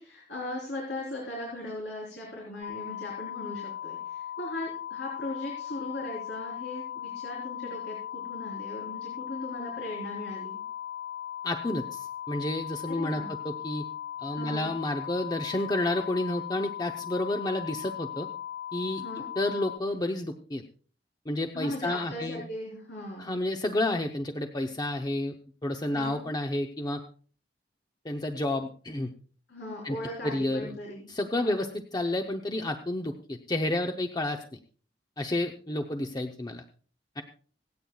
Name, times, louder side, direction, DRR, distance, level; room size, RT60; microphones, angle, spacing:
voice 1, 0.0-10.6 12.9-13.3 14.3-14.7 19.0-19.3 21.5-23.3 25.9-26.2 29.5-31.1 31.4-31.7, left 1 dB, 90° left, -3 dB, 3.9 m, -38 dB
sound 1, 2.6-19.8, left 10 dB, 60° left, 0.8 m, -38 dB
voice 2, 11.4-13.8 14.2-18.3 18.7-19.0 19.4-20.6 21.3-22.4 23.2-25.4 25.6-27.0 28.0-29.1 29.8-30.0 30.2-30.8 31.1-34.4 35.2-36.6 37.2-37.3, left 1 dB, 25° left, 5 dB, 0.7 m, -30 dB
26.0 x 8.7 x 2.3 m, 0.42 s
head